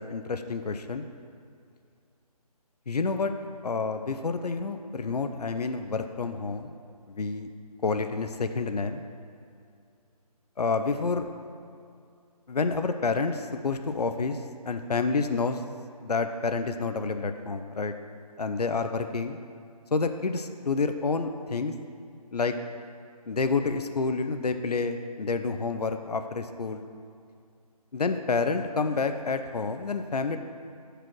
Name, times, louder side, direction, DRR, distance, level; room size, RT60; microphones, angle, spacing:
voice 1, 0.1-1.1 2.9-3.3 3.6-6.7 7.1-7.5 7.8-9.0 10.6-11.3 12.5-15.6 16.0-17.9 18.4-19.4 19.9-21.7 22.3-22.6 23.3-26.8 27.9-30.4, left 4 dB, 75° left, 8 dB, 0.7 m, -29 dB
13.5 x 5.1 x 4.6 m, 2.4 s
figure-of-eight pair, 155°, 20 cm